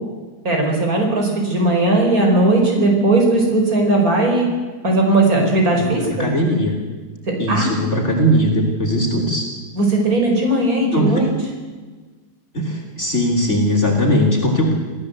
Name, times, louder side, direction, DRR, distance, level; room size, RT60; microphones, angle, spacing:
voice 1, 0.5-4.5 4.8-6.3 7.5-7.7 9.8-11.3, right 2 dB, 55° right, 1 dB, 5.2 m, -17 dB
voice 2, 5.8-6.7 7.4-9.5 10.9-11.3 12.5-14.7, equal, 40° left, 0 dB, 3.4 m, -19 dB
25.5 x 16.5 x 8.1 m, 1.4 s
omnidirectional pair, 1.8 m